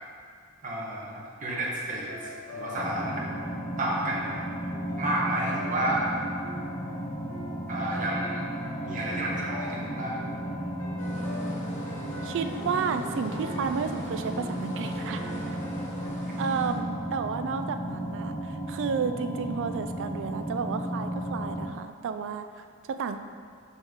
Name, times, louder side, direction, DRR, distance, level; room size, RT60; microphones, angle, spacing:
voice 1, 0.6-2.1 2.5-3.2 3.8-4.4 5.0-6.1 7.7-8.4 8.8-10.2, right 1 dB, 35° right, -5 dB, 1.1 m, -30 dB
sound 1, 2.1-16.1, left 1 dB, 80° left, 1.3 m, -44 dB
sound 2, 2.7-21.7, equal, 20° left, 0.6 m, -34 dB
sound 3, 11.0-16.7, left 1 dB, 35° left, 1.2 m, -44 dB
voice 2, 12.2-15.6 16.4-23.2, right 5 dB, 55° right, 8 dB, 0.3 m, -32 dB
6.0 x 5.5 x 3.6 m, 2.1 s
head